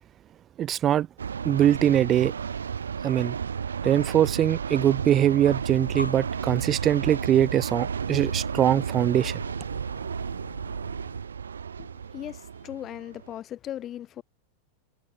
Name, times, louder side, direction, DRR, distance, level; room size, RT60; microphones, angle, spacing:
voice 1, 0.6-1.1 1.4-2.3 3.0-3.3 3.8-9.4, right 10 dB, 30° right, 1.8 m, -22 dB
sound 1, 1.2-13.4, right 7 dB, 70° right, 3.3 m, -32 dB
Breathing, 5.6-11.3, left 1 dB, 85° left, 6.7 m, -42 dB
voice 2, 11.8-14.2, left 11 dB, 30° left, 5.0 m, -38 dB
figure-of-eight pair, 90°, 0 cm